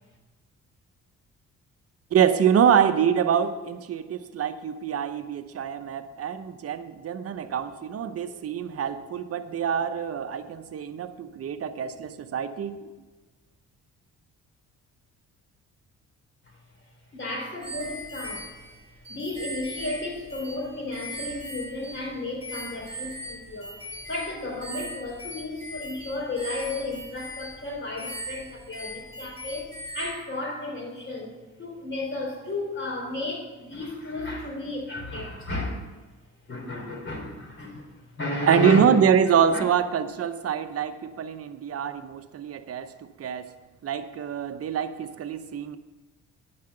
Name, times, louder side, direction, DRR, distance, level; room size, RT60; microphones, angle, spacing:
voice 1, 2.1-12.8 38.5-42.9 43.2-43.5 43.8-45.8, right 8 dB, 50° right, 9 dB, 0.8 m, -25 dB
voice 2, 17.1-18.6 19.1-23.8 24.1-35.8 36.5-38.8 39.5-39.7, left 2 dB, 40° left, 0 dB, 3.6 m, -33 dB
sound 1, 17.6-22.1 22.4-30.2, equal, 15° left, 3.3 m, -39 dB
9.6 x 5.7 x 7.7 m, 1.2 s
cardioid pair, 90°, 30 cm